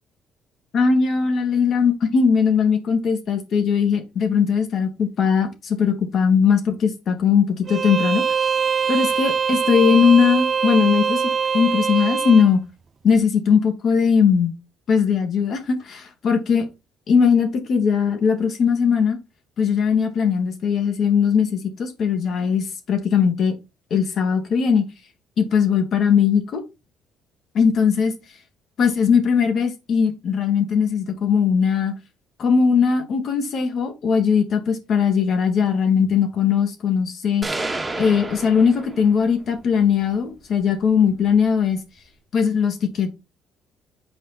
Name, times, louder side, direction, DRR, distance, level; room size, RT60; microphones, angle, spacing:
voice 1, 0.7-8.2 8.9-11.2 11.5-12.6 13.0-14.6 14.9-16.7 17.1-19.2 19.6-23.5 23.9-24.8 25.4-26.6 27.5-28.1 28.8-31.9 32.4-37.4 38.0-41.8 42.3-43.1, left 6 dB, 60° left, 2.8 m, -19 dB
Bowed string instrument, 7.7-12.5, right 6 dB, 40° right, 0.7 m, -22 dB
sound 1, 37.4-39.4, right 2 dB, 15° right, 2.3 m, -30 dB
8.5 x 5.2 x 4.4 m
supercardioid pair, 75°, 0 cm